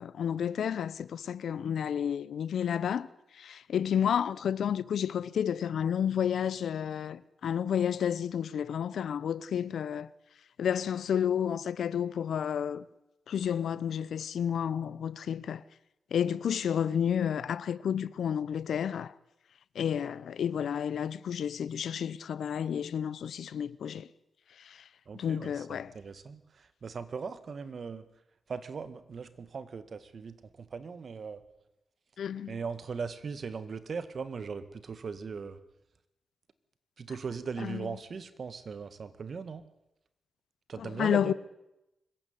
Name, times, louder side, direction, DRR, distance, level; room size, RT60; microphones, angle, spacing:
voice 1, 0.0-3.1 3.4-10.1 10.6-12.8 13.3-15.6 16.1-19.1 19.7-24.1 24.7-24.8 25.1-25.9 32.2-32.6 37.6-37.9 40.8-41.3, left 8 dB, 75° left, 0.8 m, -31 dB
voice 2, 25.1-28.1 28.5-31.4 32.5-35.6 37.0-39.6 40.7-41.3, right 5 dB, 60° right, 1.8 m, -39 dB
24.5 x 15.0 x 9.5 m
supercardioid pair, 45°, 0 cm